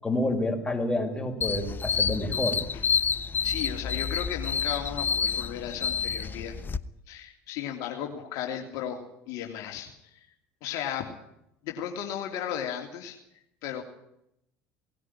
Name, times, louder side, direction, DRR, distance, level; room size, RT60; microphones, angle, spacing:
voice 1, 0.0-2.6 5.5-5.7, left 1 dB, 15° left, 3 dB, 6.2 m, -29 dB
sound 1, 1.4-6.8, left 6 dB, 30° left, 1.1 m, -29 dB
voice 2, 3.4-6.5 7.1-9.0 9.3-10.3 10.6-11.1 11.6-13.2 13.6-13.8, left 9 dB, 65° left, 3 dB, 3.0 m, -35 dB
19.0 x 16.5 x 9.9 m, 0.79 s
hypercardioid pair, 70°, 6 cm